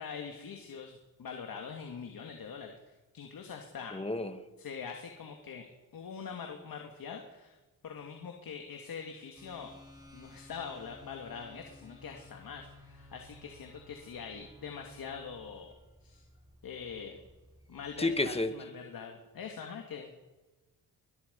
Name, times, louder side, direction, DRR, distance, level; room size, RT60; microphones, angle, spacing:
voice 1, 0.0-2.7 3.1-4.0 4.6-5.7 5.9-7.6 7.8-9.7 10.1-15.7 16.0-16.2 16.6-17.2 17.7-20.2, left 6 dB, 65° left, 3 dB, 2.4 m, -43 dB
voice 2, 3.9-4.4 18.0-18.5, left 2 dB, 15° left, 9 dB, 1.9 m, -30 dB
sound 1, 9.3-18.4, left 1 dB, 10° right, 6.8 m, -56 dB
22.0 x 22.0 x 5.5 m, 1.2 s
cardioid pair, 95°, 38 cm